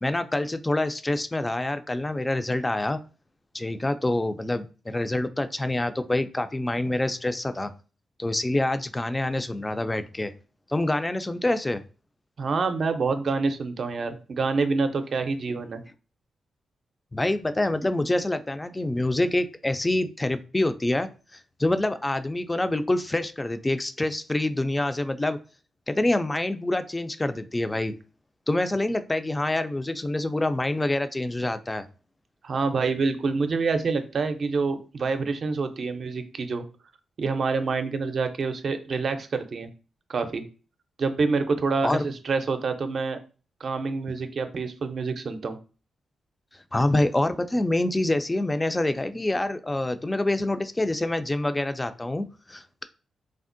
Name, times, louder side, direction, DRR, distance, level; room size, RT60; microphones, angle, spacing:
voice 1, 0.0-3.0 3.5-7.7 8.2-10.3 10.7-11.8 17.1-25.4 25.9-27.9 28.5-31.9 41.8-42.0 46.7-52.8, left 1 dB, 20° left, 10 dB, 0.3 m, -26 dB
voice 2, 12.4-15.8 32.4-36.6 37.2-39.7 40.1-40.4 41.0-43.2 43.6-45.6, right 4 dB, 60° right, 8 dB, 0.4 m, -27 dB
3.4 x 2.1 x 2.5 m, 0.35 s
cardioid pair, 60°, 0 cm